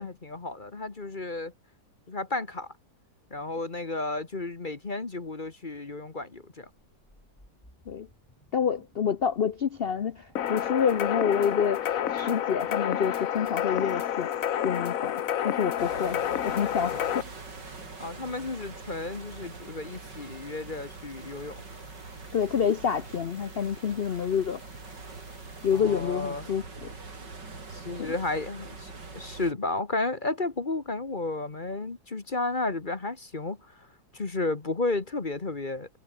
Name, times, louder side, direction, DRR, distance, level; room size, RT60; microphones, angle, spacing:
voice 1, 0.0-1.5 2.1-2.7 3.3-6.7 18.0-21.6 25.7-26.5 27.7-33.9 34.1-35.9, left 2 dB, 30° left, 1.4 m, -33 dB
sound 1, 6.6-25.8, left 1 dB, 10° left, 7.0 m, -59 dB
voice 2, 8.5-14.3 14.6-17.2 22.3-24.6 25.6-26.9 28.0-28.1, left 7 dB, 80° left, 0.5 m, -28 dB
sound 2, 10.4-17.2, left 10 dB, 55° left, 1.1 m, -29 dB
sound 3, 15.8-29.5, right 3 dB, 65° right, 4.7 m, -44 dB
omnidirectional pair, 2.0 m